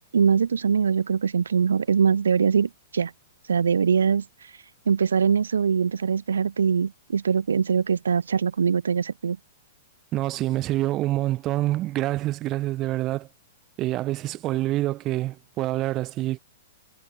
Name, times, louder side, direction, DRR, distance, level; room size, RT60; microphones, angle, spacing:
voice 1, 0.1-3.1 3.4-9.4, right 6 dB, 70° right, 0.3 m, -23 dB
voice 2, 10.1-13.3 13.8-16.4, right 16 dB, 30° right, 0.9 m, -26 dB
figure-of-eight pair, 105°, 0 cm